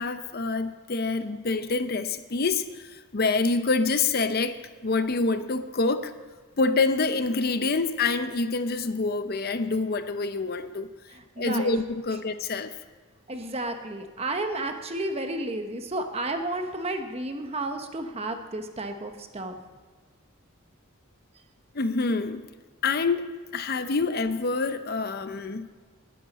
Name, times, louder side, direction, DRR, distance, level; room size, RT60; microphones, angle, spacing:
voice 1, 0.0-6.1 6.6-10.9 11.4-12.7 21.7-22.4 22.8-25.7, left 3 dB, 50° left, 10 dB, 0.6 m, -26 dB
voice 2, 11.1-11.8 13.3-19.6, right 2 dB, 30° right, 6 dB, 1.0 m, -32 dB
19.5 x 10.5 x 4.1 m, 1.4 s
head